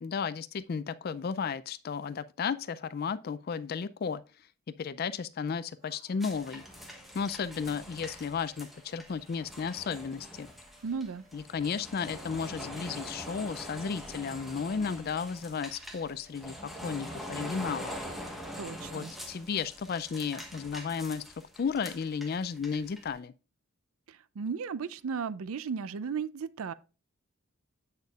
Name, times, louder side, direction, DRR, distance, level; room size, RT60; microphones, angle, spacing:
voice 1, 0.0-4.2 4.8-6.6 7.1-10.5 11.3-17.9 18.9-21.2 21.6-23.3, left 6 dB, 45° left, 0.3 m, -34 dB
sound 1, 5.6-21.1, right 2 dB, 40° right, 2.9 m, -64 dB
sound 2, 6.2-23.1, equal, ahead, 1.2 m, -44 dB
voice 2, 10.8-11.2 18.6-19.1 24.1-26.7, right 6 dB, 80° right, 0.4 m, -35 dB
8.2 x 6.6 x 2.4 m
head